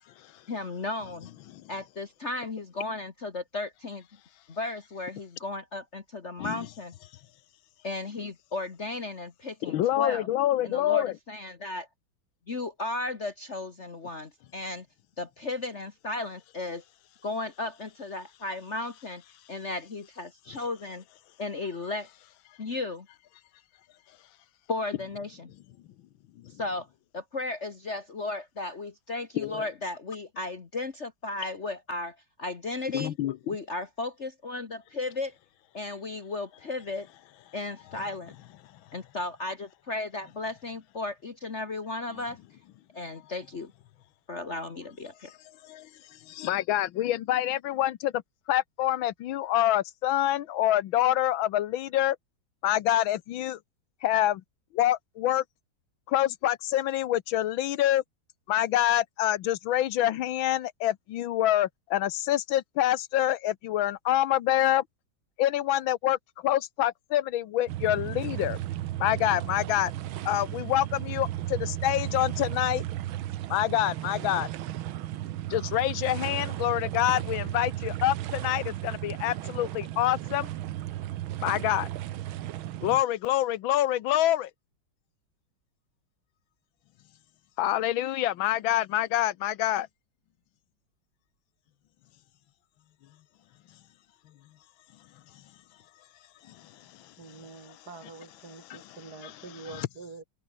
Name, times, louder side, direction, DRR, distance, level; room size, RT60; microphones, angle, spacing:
voice 1, 0.5-1.3 1.7-4.1 4.5-6.9 7.8-10.3 10.6-11.9 12.5-14.9 15.2-16.8 17.2-19.2 19.5-21.0 21.4-22.1 22.6-23.1 24.7-25.5 26.6-26.9 27.1-33.2 33.5-35.4 35.7-37.1 37.5-38.4 38.9-42.4 42.9-43.7 44.3-45.3, left 2 dB, 35° left, 1.7 m, -35 dB
voice 2, 9.7-11.1 29.4-29.6 32.9-33.4 45.6-45.9 46.3-48.2 48.5-52.2 52.6-53.6 54.0-54.4 54.7-55.4 56.1-58.0 58.5-64.8 65.4-68.6 69.0-69.9 70.2-72.8 73.5-74.5 75.5-80.5 81.4-81.9 82.8-84.5 87.6-89.9 96.5-96.6 97.7-97.8 98.0-98.1 98.4-99.9, left 13 dB, 85° left, 1.6 m, -26 dB
sound 1, 67.7-83.0, right 13 dB, 85° right, 1.7 m, -34 dB
voice 3, 97.2-100.2, right 4 dB, 50° right, 4.2 m, -45 dB
open air
omnidirectional pair, 2.2 m